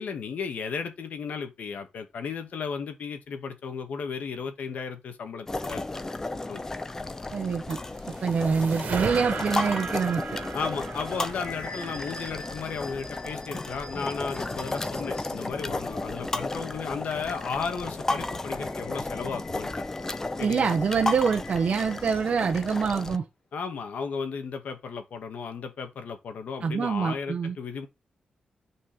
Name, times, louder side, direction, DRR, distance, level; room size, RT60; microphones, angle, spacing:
voice 1, 0.0-6.0 6.5-6.6 10.5-19.8 20.4-20.8 23.5-27.9, left 5 dB, 75° left, 2.3 m, -34 dB
sound 1, 5.5-23.2, left 2 dB, 20° left, 0.9 m, -33 dB
voice 2, 7.3-7.8 8.2-10.4 20.4-23.2 26.6-27.5, right 6 dB, 50° right, 1.2 m, -25 dB
sound 2, 7.7-13.1, right 6 dB, 85° right, 2.0 m, -37 dB
sound 3, 11.3-15.6 18.3-22.3, left 3 dB, 50° left, 5.2 m, -46 dB
10.0 x 5.4 x 5.3 m
wide cardioid pair, 155°, 3 cm